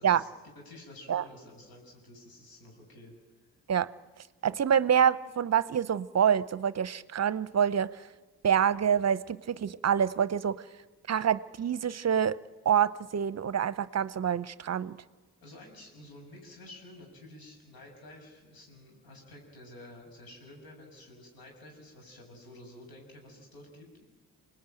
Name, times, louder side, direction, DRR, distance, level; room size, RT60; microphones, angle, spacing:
voice 1, 0.0-3.1 15.4-24.0, left 1 dB, 75° left, 2 dB, 6.8 m, -51 dB
voice 2, 4.4-8.1 8.4-10.7 11.1-15.0, right 8 dB, 45° right, 17 dB, 0.7 m, -26 dB
25.5 x 19.5 x 9.0 m, 1.3 s
supercardioid pair, 60°, 36 cm